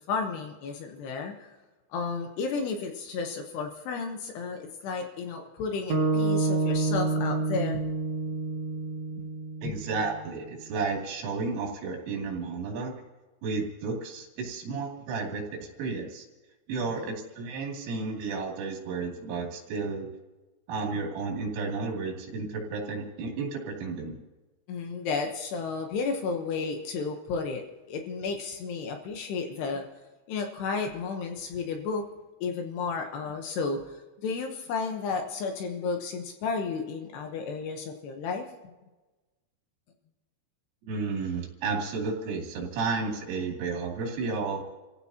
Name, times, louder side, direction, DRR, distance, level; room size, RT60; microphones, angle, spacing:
voice 1, 0.1-1.5 1.9-7.9 9.2-9.3 9.6-9.8 16.9-17.2 24.7-29.9 30.3-32.0 32.4-38.7, left 4 dB, 70° left, 4 dB, 2.8 m, -32 dB
sound 1, 5.9-10.2, right 3 dB, 60° right, 3.1 m, -28 dB
voice 2, 9.6-13.0 13.4-15.4 15.8-16.3 16.7-20.1 20.7-24.2 40.9-44.6, right 4 dB, 85° right, 0 dB, 5.2 m, -32 dB
30.0 x 15.5 x 2.9 m, 1.2 s
omnidirectional pair, 5.6 m